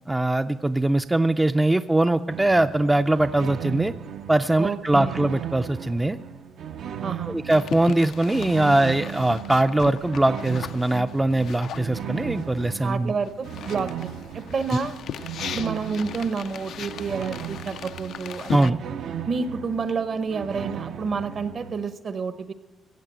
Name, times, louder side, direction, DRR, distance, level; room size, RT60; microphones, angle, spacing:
voice 1, 0.1-3.9 4.3-6.2 7.3-13.1 18.5-18.8, right 2 dB, 15° right, 8 dB, 0.4 m, -22 dB
sound 1, 2.3-21.8, right 9 dB, 70° right, 0.7 m, -36 dB
voice 2, 4.6-5.2 7.0-7.4 12.8-14.1 14.3-15.0 15.5-18.8 19.3-22.5, right 5 dB, 50° right, 12 dB, 0.9 m, -29 dB
sound 2, 7.5-12.9 13.2-18.7, left 9 dB, 70° left, 0.4 m, -38 dB
15.5 x 8.2 x 8.8 m, 1.3 s
cardioid pair, 90°, 0 cm